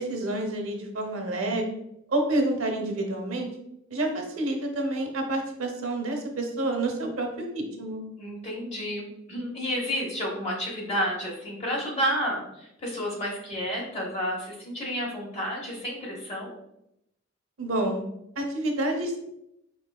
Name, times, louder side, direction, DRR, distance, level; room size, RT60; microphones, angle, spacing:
voice 1, 0.0-1.7 2.1-3.5 3.9-7.3 7.5-8.0 17.6-18.0 18.4-19.2, right 1 dB, 85° right, 2 dB, 0.7 m, -28 dB
voice 2, 8.2-16.5, equal, 30° left, -3 dB, 1.1 m, -31 dB
4.7 x 3.2 x 2.3 m, 0.81 s
head